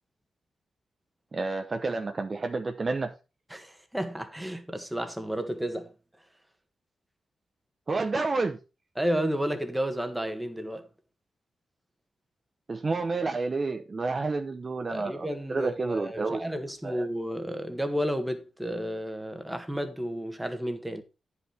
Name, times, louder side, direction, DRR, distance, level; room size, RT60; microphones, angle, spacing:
voice 1, 1.3-3.1 7.9-8.6 12.7-16.4 16.8-17.1, right 3 dB, 35° right, 0.8 m, -30 dB
voice 2, 3.5-5.9 9.0-10.9 14.9-21.0, equal, 5° right, 1.4 m, -32 dB
9.9 x 5.7 x 4.3 m
wide cardioid pair, 115°, 0 cm